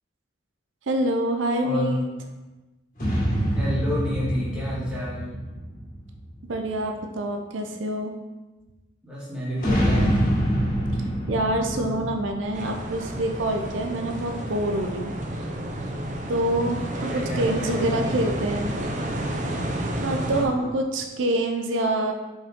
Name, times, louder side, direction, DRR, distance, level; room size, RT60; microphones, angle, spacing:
voice 1, 0.9-2.0 6.4-8.1 10.9-15.5 16.3-18.7 20.0-22.1, right 1 dB, 90° right, 4 dB, 0.6 m, -26 dB
voice 2, 1.6-2.0 3.5-5.4 9.0-10.2 11.7-12.0 17.0-18.7 19.9-20.8, left 1 dB, 5° right, -9 dB, 2.0 m, -31 dB
sound 1, 3.0-6.7 9.6-13.4, equal, 45° left, 2.0 m, -26 dB
sound 2, 12.5-20.5, right 1 dB, 40° right, 0.6 m, -31 dB
5.4 x 4.7 x 3.7 m, 1.1 s
head